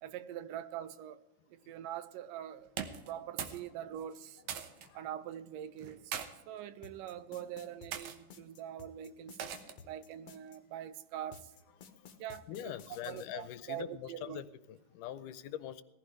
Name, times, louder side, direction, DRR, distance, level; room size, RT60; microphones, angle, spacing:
voice 1, 0.0-1.2 1.5-2.7 3.1-4.4 4.9-6.1 6.5-9.4 9.8-11.5 12.2-14.4, right 11 dB, 85° right, 2.3 m, -44 dB
sound 1, 2.7-3.7 3.9-4.9 5.8-6.3 7.0-7.3 7.9-8.2 9.4-9.9, right 8 dB, 70° right, 2.2 m, -41 dB
voice 2, 4.6-5.0 11.8-12.1 12.5-15.8, left 11 dB, 85° left, 2.2 m, -44 dB
sound 2, 6.8-10.6 11.3-13.3, left 6 dB, 60° left, 2.0 m, -54 dB
19.5 x 15.0 x 3.3 m
omnidirectional pair, 3.7 m